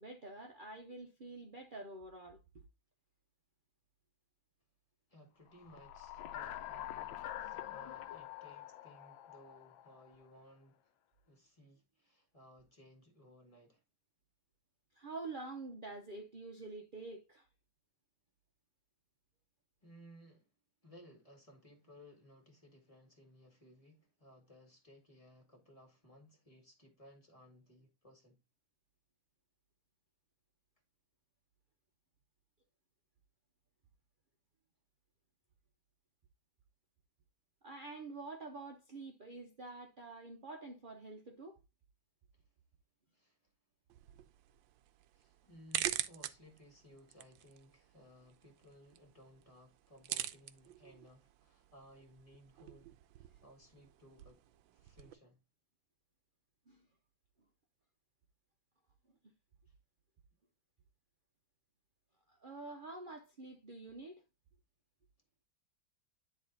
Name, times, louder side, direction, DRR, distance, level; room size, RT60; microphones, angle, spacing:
voice 1, 0.0-2.6 14.9-17.5 37.6-41.6 56.7-56.8 62.3-64.2, right 3 dB, 60° right, 0.5 m, -47 dB
voice 2, 5.1-10.9 11.3-13.8 19.8-20.5 20.8-28.4 42.3-42.5 43.1-43.5 45.1-52.9 53.2-54.4 54.7-55.4 59.7-59.8, equal, 20° left, 1.9 m, -60 dB
sound 1, 5.6-10.2, left 12 dB, 90° left, 1.5 m, -46 dB
sound 2, 43.9-55.1, right 13 dB, 85° right, 1.4 m, -45 dB
10.0 x 3.5 x 3.9 m
omnidirectional pair, 2.1 m